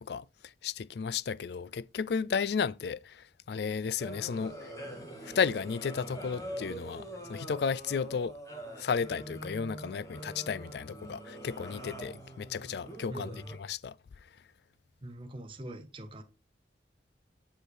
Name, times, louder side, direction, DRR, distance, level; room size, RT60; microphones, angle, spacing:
voice 1, 0.0-4.7 5.2-8.4 8.8-14.0, left 6 dB, 65° left, 0.4 m, -33 dB
sound 1, 4.0-13.6, right 1 dB, 20° left, 2.0 m, -44 dB
voice 2, 13.1-13.5 15.0-16.2, right 1 dB, 30° right, 1.0 m, -43 dB
8.9 x 5.0 x 4.6 m
head